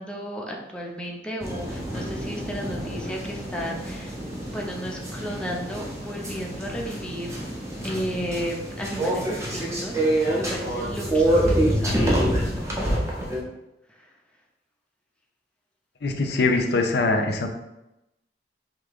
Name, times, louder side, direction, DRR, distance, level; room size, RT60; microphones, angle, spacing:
voice 1, 0.0-4.1 4.4-7.4 7.8-13.3, equal, 5° left, -1 dB, 0.7 m, -34 dB
sound 1, 1.4-13.4, right 1 dB, 15° right, 0.9 m, -26 dB
voice 2, 16.0-17.5, left 3 dB, 65° left, 4 dB, 0.6 m, -22 dB
5.0 x 2.9 x 3.6 m, 0.91 s
head